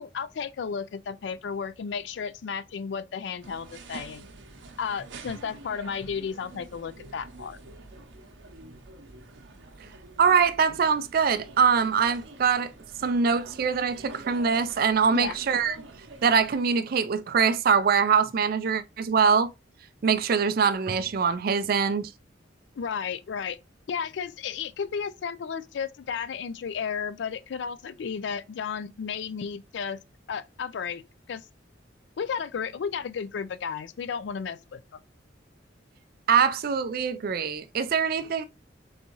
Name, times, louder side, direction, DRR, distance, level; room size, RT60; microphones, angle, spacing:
voice 1, 0.0-4.3 4.8-7.6 15.1-15.4 22.8-23.6 23.9-30.0 30.3-31.0 31.3-31.5 32.2-34.8, left 6 dB, 65° left, 0.3 m, -33 dB
sound 1, 3.4-16.6, right 2 dB, 80° right, 0.7 m, -47 dB
voice 2, 10.2-12.7 13.0-15.8 16.2-19.5 20.0-22.1 36.3-38.4, right 6 dB, 50° right, 0.4 m, -23 dB
4.0 x 3.5 x 2.9 m
head